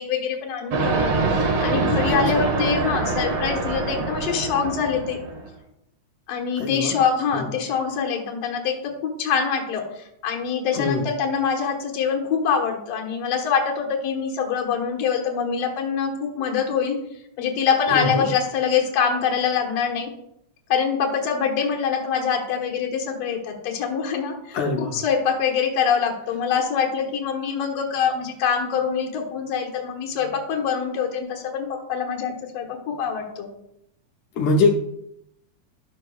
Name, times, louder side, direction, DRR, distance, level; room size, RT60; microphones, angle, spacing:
voice 1, 0.0-5.2 6.3-8.8 9.2-9.8 10.2-17.0 17.4-20.1 20.7-33.5, left 6 dB, 65° left, 0 dB, 2.3 m, -24 dB
sound 1, 0.7-5.5, right 3 dB, 60° right, 2.0 m, -24 dB
voice 2, 6.6-7.0 7.3-7.5 10.7-11.1 17.9-18.3 24.5-25.0 34.4-34.8, left 3 dB, 80° left, -1 dB, 2.2 m, -23 dB
12.5 x 6.4 x 2.3 m, 0.79 s
omnidirectional pair, 3.4 m